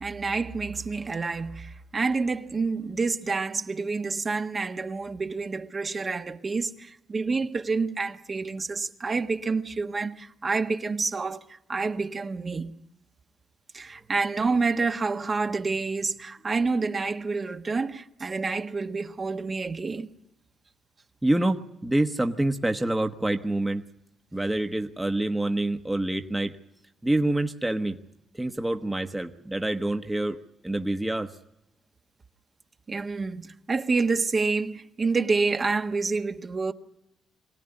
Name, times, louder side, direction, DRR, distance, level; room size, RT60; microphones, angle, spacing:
voice 1, 0.0-12.7 13.7-20.1 32.9-36.7, right 4 dB, 35° right, 1.3 m, -28 dB
voice 2, 21.2-23.8 24.3-26.5 27.0-28.0 28.3-30.4 30.6-31.3, right 1 dB, 10° right, 1.2 m, -26 dB
24.0 x 17.5 x 9.9 m
cardioid pair, 90°, 0 cm